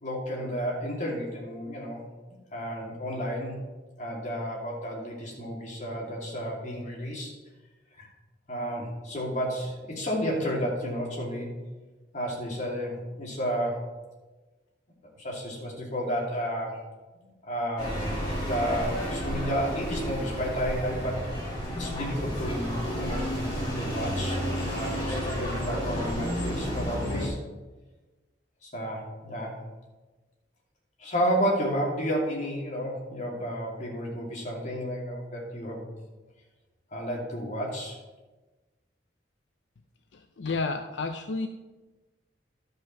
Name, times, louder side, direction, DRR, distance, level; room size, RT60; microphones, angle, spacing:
voice 1, 0.0-2.0 2.5-3.6 4.0-7.3 7.9-8.1 8.5-11.5 12.1-13.8 15.2-16.8 17.2-18.0 18.4-27.4 28.6-29.6 31.0-35.9 36.9-38.0, equal, 40° left, -3 dB, 2.6 m, -32 dB
sound 1, 17.8-27.3, equal, 25° left, 3.3 m, -31 dB
voice 2, 40.1-41.5, left 3 dB, 75° left, 6 dB, 0.5 m, -31 dB
11.5 x 5.3 x 5.8 m, 1.2 s
head